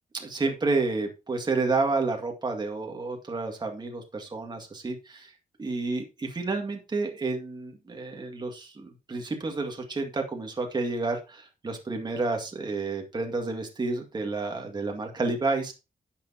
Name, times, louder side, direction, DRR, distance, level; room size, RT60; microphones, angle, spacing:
voice 1, 0.1-5.3 5.6-15.7, right 3 dB, 30° right, 3 dB, 2.1 m, -30 dB
10.5 x 8.3 x 2.8 m, 0.27 s
wide cardioid pair, 135°, 15 cm